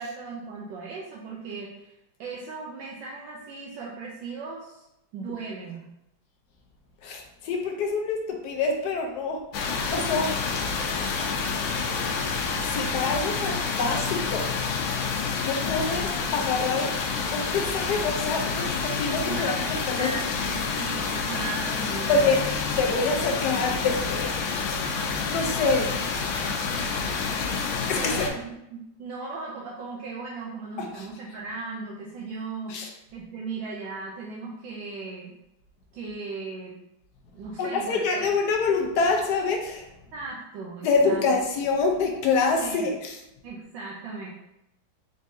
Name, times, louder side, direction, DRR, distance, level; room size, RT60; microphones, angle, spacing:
voice 1, 0.0-4.8 5.1-5.8 19.2-22.4 22.7-22.8 28.0-35.3 35.9-36.8 37.3-38.0 40.1-41.2 42.6-42.9 43.4-44.3, right 3 dB, 80° right, -3 dB, 1.3 m, -37 dB
voice 2, 7.0-10.6 12.6-14.7 15.4-16.9 17.3-20.2 22.1-24.5 25.3-25.9 27.9-28.2 30.8-31.1 32.7-32.9 37.6-39.9 40.8-43.2, left 4 dB, 70° left, 2 dB, 1.1 m, -26 dB
sound 1, 9.5-28.3, left 5 dB, 85° left, 1.3 m, -28 dB
4.0 x 3.7 x 2.6 m, 0.84 s
omnidirectional pair, 2.1 m